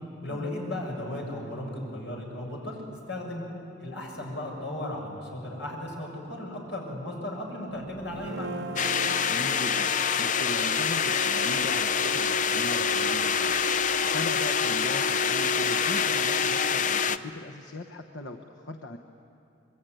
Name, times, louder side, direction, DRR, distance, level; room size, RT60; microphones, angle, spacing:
voice 1, 0.2-2.8 3.1-3.5 3.8-8.7, left 1 dB, 75° left, -1 dB, 6.9 m, -35 dB
sound 1, 7.7-14.2, right 2 dB, 20° right, 4.5 m, -52 dB
Guitar, 8.1-14.5, right 3 dB, 75° right, 1.0 m, -42 dB
sound 2, 8.8-17.2, left 6 dB, 45° left, 0.6 m, -26 dB
voice 2, 9.3-19.0, left 1 dB, 90° left, 4 dB, 1.1 m, -39 dB
26.0 x 22.0 x 9.2 m, 2.8 s
head